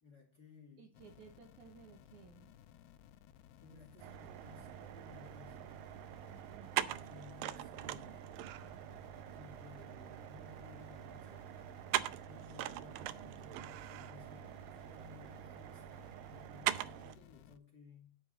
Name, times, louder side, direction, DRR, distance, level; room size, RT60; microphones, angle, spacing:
voice 1, 0.0-0.9 3.6-5.9 6.9-8.3 9.3-11.5 12.3-18.2, left 4 dB, 30° left, 2.3 m, -58 dB
voice 2, 0.8-2.5 6.5-6.7, right 6 dB, 65° right, 2.2 m, -58 dB
sound 1, 0.9-17.6, left 11 dB, 85° left, 2.5 m, -60 dB
sound 2, 4.0-17.2, right 14 dB, 80° right, 2.0 m, -42 dB
10.5 x 7.8 x 4.0 m
omnidirectional pair, 4.5 m